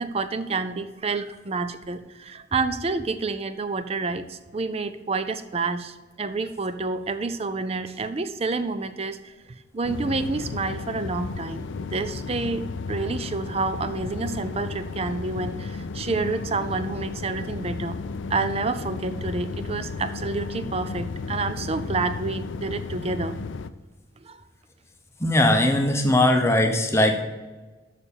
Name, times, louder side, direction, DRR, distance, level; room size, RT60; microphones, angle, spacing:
voice 1, 0.0-9.3 9.7-11.6 11.9-18.0 18.3-23.4 24.2-24.4, right 3 dB, 30° right, 11 dB, 0.5 m, -29 dB
sound 1, 9.8-23.7, left 4 dB, 70° left, 0.4 m, -33 dB
voice 2, 25.2-27.2, left 1 dB, 15° left, 4 dB, 0.8 m, -20 dB
6.6 x 6.5 x 7.1 m, 1.2 s
head